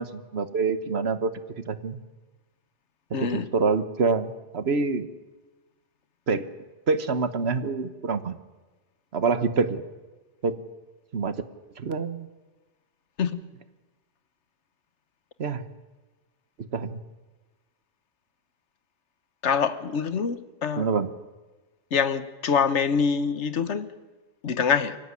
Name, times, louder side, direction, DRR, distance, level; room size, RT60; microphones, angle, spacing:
voice 1, 0.0-1.3 1.7-2.0 3.2-5.1 6.3-6.5 6.9-8.3 9.1-9.8 10.4-10.6 11.1-11.4 11.8-12.3 15.4-15.6 16.7-17.0 20.8-21.1, right 4 dB, 65° right, 12 dB, 1.4 m, -26 dB
voice 2, 3.1-3.5 13.2-13.4 19.4-20.9 21.9-23.9 24.4-25.0, left 6 dB, 75° left, 12 dB, 1.5 m, -25 dB
24.0 x 15.5 x 9.7 m, 1.2 s
omnidirectional pair, 1.2 m